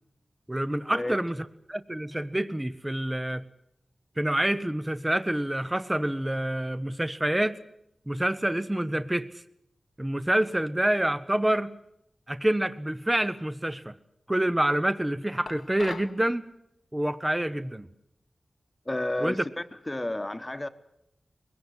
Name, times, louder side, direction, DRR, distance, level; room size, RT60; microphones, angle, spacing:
voice 1, 0.5-1.4 1.7-3.4 4.2-7.6 8.1-9.4 10.0-11.7 12.3-13.9 14.3-16.5 16.9-17.9 19.2-19.4, right 1 dB, 15° right, 13 dB, 0.8 m, -27 dB
sound 1, 15.5-16.2, left 4 dB, 85° left, 1.1 m, -40 dB
voice 2, 18.9-19.4 19.9-20.7, left 1 dB, 20° left, 10 dB, 1.2 m, -31 dB
22.0 x 17.0 x 9.6 m, 0.79 s
wide cardioid pair, 95°, 0 cm